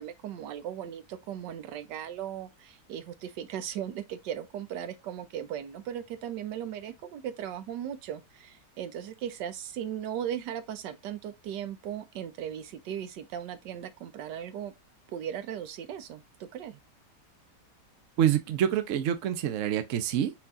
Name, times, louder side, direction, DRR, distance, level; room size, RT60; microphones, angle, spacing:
voice 1, 0.0-14.7 15.1-16.8, right 9 dB, 90° right, 1.3 m, -37 dB
voice 2, 18.2-20.3, right 10 dB, 60° right, 0.9 m, -26 dB
4.5 x 4.2 x 2.5 m
omnidirectional pair, 1.8 m